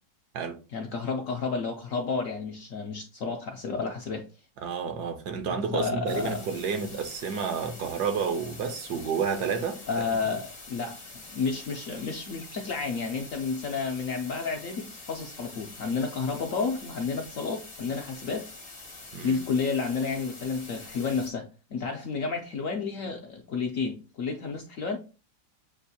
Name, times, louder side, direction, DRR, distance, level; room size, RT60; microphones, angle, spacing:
voice 1, 0.7-4.2 5.7-6.6 9.9-11.0 11.3-18.5 19.2-25.0, left 4 dB, 65° left, 0.8 m, -31 dB
voice 2, 4.6-9.8 19.1-19.4, right 6 dB, 70° right, 1.3 m, -30 dB
sound 1, 6.1-21.3, left 3 dB, 35° left, 0.6 m, -45 dB
7.2 x 2.4 x 2.7 m
omnidirectional pair, 1.9 m